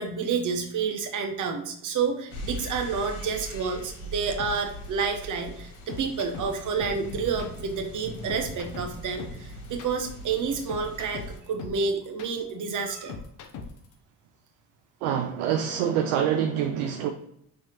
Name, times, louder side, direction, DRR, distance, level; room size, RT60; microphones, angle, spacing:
voice 1, 0.0-13.1, right 5 dB, 40° right, 5 dB, 1.0 m, -29 dB
sound 1, 2.3-11.4, left 1 dB, 65° left, 1.2 m, -40 dB
sound 2, 4.4-13.9, left 4 dB, 40° left, 0.7 m, -41 dB
voice 2, 15.0-17.1, right 9 dB, 60° right, 6 dB, 0.5 m, -26 dB
5.6 x 3.2 x 2.9 m, 0.74 s
figure-of-eight pair, 50°, 48 cm